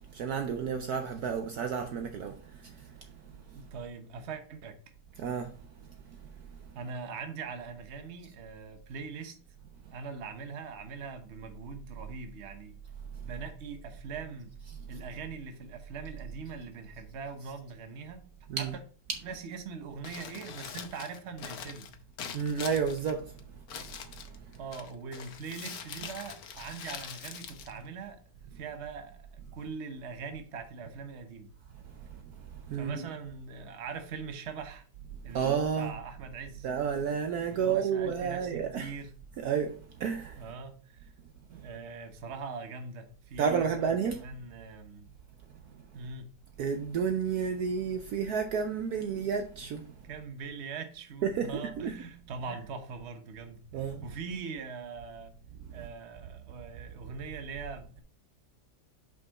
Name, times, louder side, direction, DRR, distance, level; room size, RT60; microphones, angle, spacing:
voice 1, 0.1-2.9 5.2-5.5 18.5-18.7 22.3-23.3 23.8-24.0 32.4-33.0 35.3-35.9 36.6-38.9 39.4-40.4 43.4-44.2 46.6-49.9 51.2-51.9 53.7-54.0 55.7-55.8, right 6 dB, 65° right, 1.1 m, -31 dB
voice 2, 3.5-4.8 6.7-9.4 9.9-12.8 13.2-14.5 14.9-18.2 18.6-18.7 19.2-21.9 24.6-28.2 28.5-31.5 32.7-34.8 35.2-36.7 37.5-39.1 40.4-41.1 41.5-45.1 45.9-46.4 50.0-55.4 55.7-58.0, right 5 dB, 45° right, 1.1 m, -42 dB
Crumpling crinkling, 19.9-28.5, left 7 dB, 65° left, 1.3 m, -44 dB
6.1 x 5.3 x 4.1 m
omnidirectional pair, 1.9 m